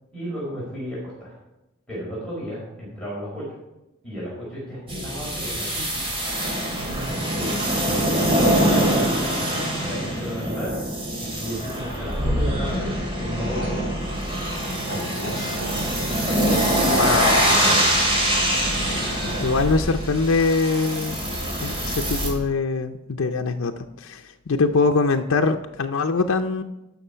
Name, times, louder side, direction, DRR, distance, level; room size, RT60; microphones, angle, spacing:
voice 1, 0.1-1.3 1.9-3.5 4.0-6.0 7.0-7.5 7.8-10.8 11.2-12.9 13.2-14.1 14.9-16.7 17.4-17.9, equal, 5° left, -8 dB, 4.5 m, -34 dB
sound 1, 4.9-22.3, right 1 dB, 25° right, 2.7 m, -24 dB
sound 2, 13.4-14.2 14.5-19.5, right 1 dB, 65° right, 3.1 m, -35 dB
voice 2, 16.8-17.4 18.9-21.2 21.6-26.6, left 4 dB, 85° left, 4 dB, 0.6 m, -23 dB
14.0 x 5.9 x 5.6 m, 0.95 s
head